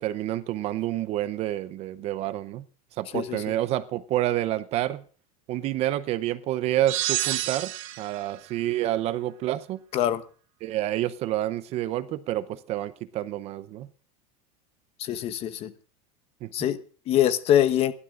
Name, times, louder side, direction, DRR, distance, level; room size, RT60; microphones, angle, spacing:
voice 1, 0.0-2.6 3.0-5.0 5.5-7.7 8.0-9.8 10.6-13.9 16.4-16.7, right 14 dB, 35° right, 0.7 m, -28 dB
voice 2, 3.1-3.4 9.9-10.2 15.0-15.7 16.5-17.9, left 11 dB, 30° left, 1.1 m, -24 dB
sound 1, 6.9-8.2, right 16 dB, 60° right, 1.4 m, -29 dB
28.0 x 12.5 x 2.5 m
supercardioid pair, 165°, 19 cm